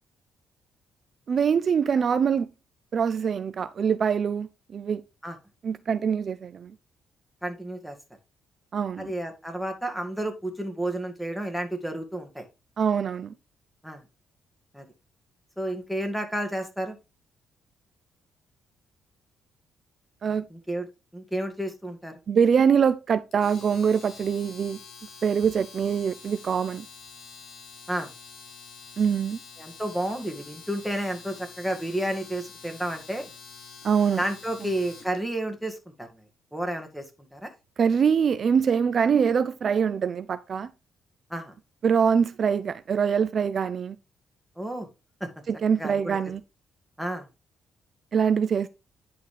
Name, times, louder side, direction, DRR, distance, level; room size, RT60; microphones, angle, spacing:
voice 1, 1.3-2.5 2.9-5.0 5.6-6.7 8.7-9.1 12.8-13.3 20.2-20.5 22.3-24.8 25.2-26.9 29.0-29.4 33.8-34.2 37.8-40.7 41.8-44.0 45.5-46.4 48.1-48.7, right 7 dB, 50° right, 0.4 m, -24 dB
voice 2, 7.4-8.0 9.0-12.4 13.8-14.0 14.7-14.8 15.6-17.0 20.5-20.9 21.1-22.1 27.9-28.1 29.6-33.3 34.2-36.2 36.5-37.0 37.3-37.5 41.3-41.5 44.6-44.9 45.2-45.3 45.8-46.2 47.0-47.3, right 1 dB, ahead, 2.0 m, -31 dB
Domestic sounds home sounds, 23.3-35.2, left 5 dB, 70° left, 3.9 m, -47 dB
10.5 x 4.1 x 3.3 m
cardioid pair, 85°, 0 cm